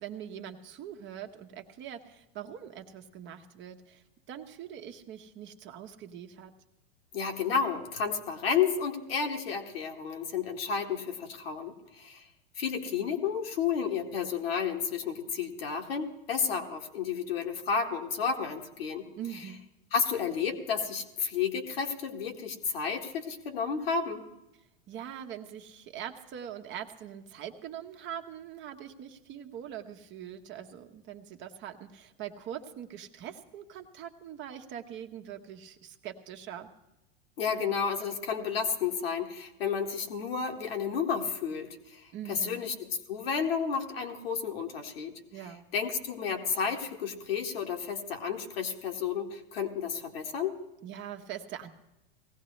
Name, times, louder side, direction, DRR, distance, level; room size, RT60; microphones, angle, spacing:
voice 1, 0.0-6.5 19.2-19.6 24.9-36.7 42.1-42.6 45.3-45.6 50.8-51.7, right 9 dB, 40° right, 6 dB, 1.2 m, -43 dB
voice 2, 7.1-12.2 12.6-19.1 19.9-24.2 37.4-45.1 45.7-50.6, left 6 dB, 80° left, 3 dB, 1.7 m, -31 dB
18.5 x 16.0 x 3.2 m, 0.96 s
hypercardioid pair, 105°, 29 cm